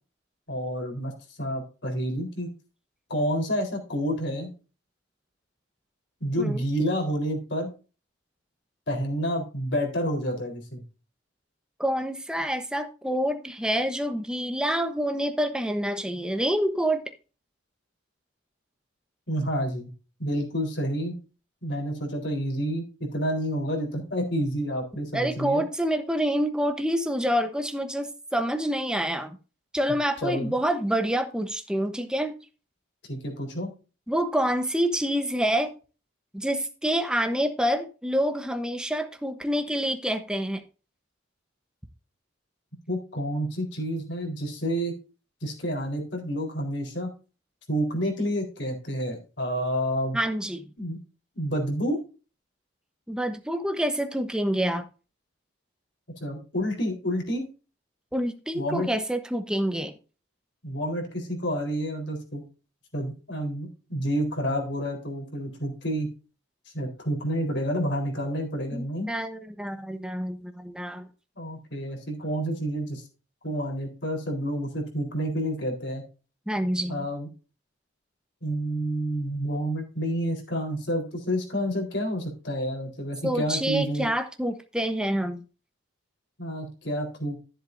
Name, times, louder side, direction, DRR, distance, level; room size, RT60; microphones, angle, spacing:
voice 1, 0.5-1.1 1.4-2.5 3.1-4.5 6.2-7.7 8.9-10.8 19.3-19.9 20.2-21.2 21.6-25.6 30.2-30.5 33.1-33.7 42.9-44.9 45.4-47.1 47.7-50.2 50.8-51.0 51.4-52.0 56.2-57.4 58.5-58.9 60.6-62.4 62.9-66.1 66.7-69.1 71.4-73.0 73.4-76.0 76.9-77.3 78.4-84.1 86.4-87.4, equal, 60° left, 4.0 m, -29 dB
voice 2, 11.8-17.0 25.1-29.4 29.7-32.3 34.1-35.7 36.3-40.6 50.1-50.7 53.1-54.9 58.1-59.9 68.7-71.1 76.5-77.1 83.2-85.4, equal, 5° right, 0.9 m, -27 dB
14.0 x 7.7 x 2.6 m
head